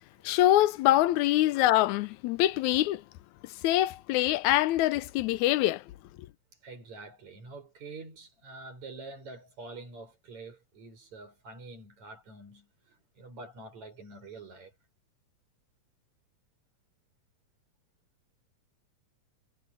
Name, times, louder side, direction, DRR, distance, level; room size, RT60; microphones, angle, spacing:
voice 1, 0.2-3.0 3.4-5.8, left 15 dB, 80° left, 1.9 m, -24 dB
voice 2, 6.6-14.8, right 3 dB, 65° right, 8.1 m, -46 dB
omnidirectional pair, 3.4 m